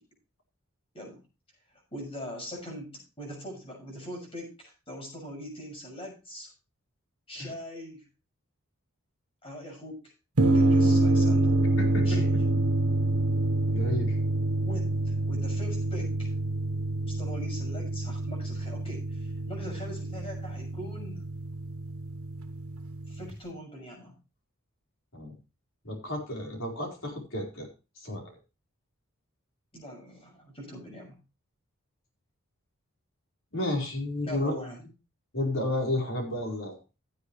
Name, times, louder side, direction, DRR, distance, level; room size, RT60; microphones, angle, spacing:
voice 1, 1.9-6.5 7.3-8.0 9.4-10.1 10.5-11.5 12.0-12.3 14.6-16.3 17.1-21.2 23.1-24.2 29.7-31.2 34.2-34.8, equal, 25° left, 1 dB, 6.3 m, -42 dB
sound 1, 10.4-23.3, right 2 dB, 80° right, 1.6 m, -27 dB
voice 2, 11.8-12.2 13.7-14.2 25.1-25.3 25.8-27.7 28.0-28.3 33.5-34.5 35.3-36.8, left 1 dB, 60° left, 1 dB, 4.5 m, -32 dB
16.5 x 8.0 x 3.2 m, 0.30 s
head